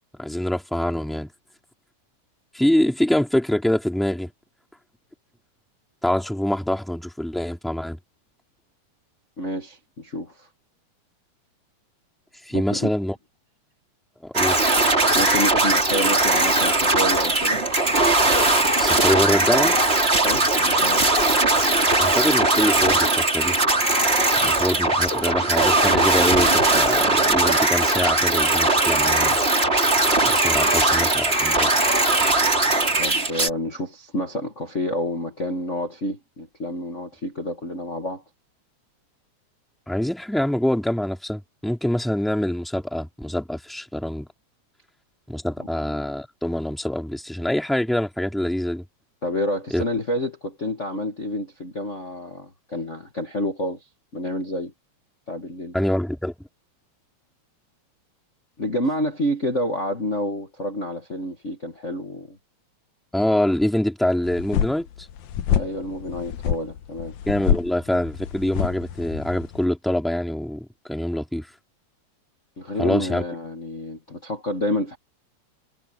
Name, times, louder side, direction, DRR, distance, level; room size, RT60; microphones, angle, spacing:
voice 1, 0.2-1.3 2.5-4.3 6.0-8.0 12.4-13.2 14.2-14.7 18.8-19.8 22.0-23.6 24.4-29.4 30.2-31.7 39.9-44.3 45.3-48.8 49.7-49.8 55.7-56.3 63.1-65.1 67.3-71.5 72.8-73.2, left 1 dB, ahead, 2.8 m, -25 dB
voice 2, 9.4-10.5 12.5-12.9 15.1-17.6 20.2-21.1 30.6-30.7 33.0-38.2 49.2-53.8 54.1-54.7 55.3-55.7 58.6-62.4 65.5-67.1 72.6-75.0, left 1 dB, 30° left, 1.6 m, -29 dB
sound 1, 14.3-33.5, right 2 dB, 20° right, 3.3 m, -19 dB
sound 2, 64.3-69.7, left 9 dB, 75° left, 2.4 m, -27 dB
omnidirectional pair, 3.5 m